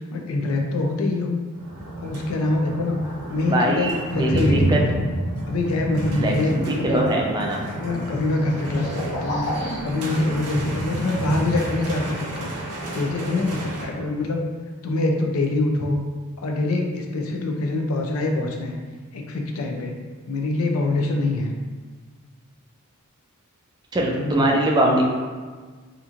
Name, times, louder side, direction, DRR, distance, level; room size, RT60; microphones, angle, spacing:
voice 1, 0.0-1.4 2.0-3.0 3.3-4.9 5.5-7.0 7.7-12.5 12.9-14.5 14.8-16.0 16.4-18.8 19.1-19.9 20.3-21.5 24.2-24.6, left 2 dB, 65° left, 2 dB, 0.4 m, -24 dB
sound 1, 1.5-13.8, right 1 dB, 85° right, 0.7 m, -30 dB
sound 2, 3.0-3.9 7.4-10.4, left 1 dB, 35° left, 1.0 m, -34 dB
voice 2, 3.4-4.8 6.2-7.6 23.9-25.0, right 1 dB, 20° right, -1 dB, 0.3 m, -22 dB
2.8 x 2.4 x 2.4 m, 1.5 s
head